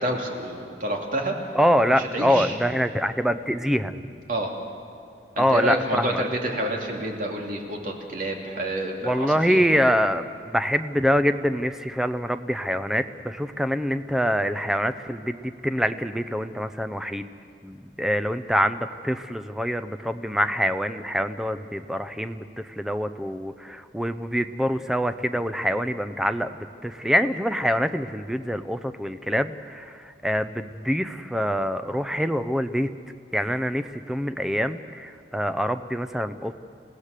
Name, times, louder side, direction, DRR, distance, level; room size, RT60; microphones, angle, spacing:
voice 1, 0.0-1.4 2.0-2.5 4.3-4.5 5.4-9.6, right 1 dB, 50° right, 1 dB, 2.9 m, -28 dB
voice 2, 1.5-3.9 5.4-6.2 9.0-17.3 17.6-26.5 26.8-32.9 33.3-36.5, equal, 5° right, 10 dB, 0.7 m, -25 dB
29.0 x 17.0 x 6.7 m, 2.3 s
head